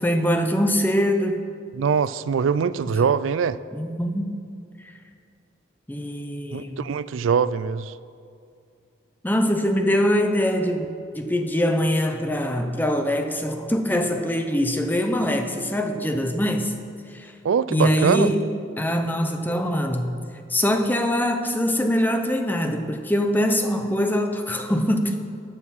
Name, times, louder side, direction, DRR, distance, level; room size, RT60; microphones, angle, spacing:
voice 1, 0.0-1.4 3.7-4.3 5.9-6.9 9.2-10.9 11.1-16.7 17.1-17.3 17.7-18.4 18.8-20.1 20.5-25.3, equal, 10° left, 0.7 m, -23 dB
voice 2, 1.7-3.6 6.5-7.9 17.4-18.3, right 6 dB, 80° right, 0.4 m, -22 dB
13.5 x 7.8 x 5.7 m
head